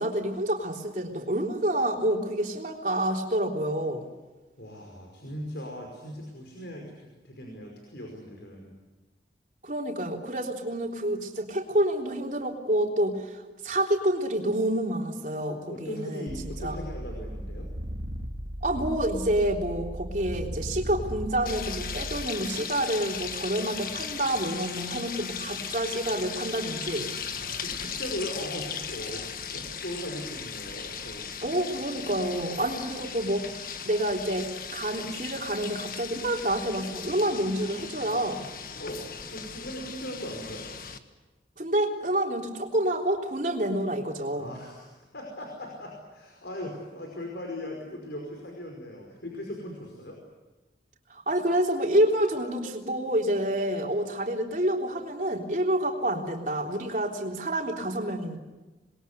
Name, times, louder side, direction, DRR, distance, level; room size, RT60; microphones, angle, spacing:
voice 1, 0.0-4.1 9.6-16.8 18.6-27.1 31.4-38.5 41.6-44.5 51.1-58.4, right 1 dB, 45° right, 1 dB, 3.7 m, -28 dB
voice 2, 4.6-8.7 15.4-17.7 27.3-31.3 38.7-40.7 44.4-50.2, left 1 dB, 75° left, 1 dB, 5.3 m, -39 dB
sound 1, 16.3-22.3, equal, 85° right, 2.8 m, -36 dB
sound 2, 21.5-41.0, left 7 dB, 50° left, 1.6 m, -37 dB
27.5 x 21.5 x 8.3 m, 1.2 s
head